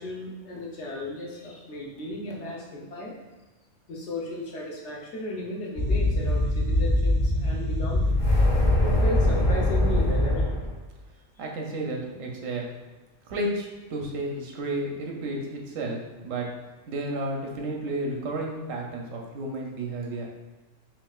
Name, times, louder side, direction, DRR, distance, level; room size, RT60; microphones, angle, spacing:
voice 1, 0.0-3.1 3.9-8.2 8.8-10.5 11.3-11.4, left 1 dB, 65° left, -3 dB, 1.1 m, -35 dB
sound 1, 5.8-10.7, left 1 dB, 45° left, 0.7 m, -22 dB
voice 2, 11.4-12.6 13.3-16.5 16.9-20.3, right 1 dB, 90° right, 0 dB, 1.1 m, -32 dB
5.6 x 2.5 x 2.3 m, 1.2 s
omnidirectional pair, 1.3 m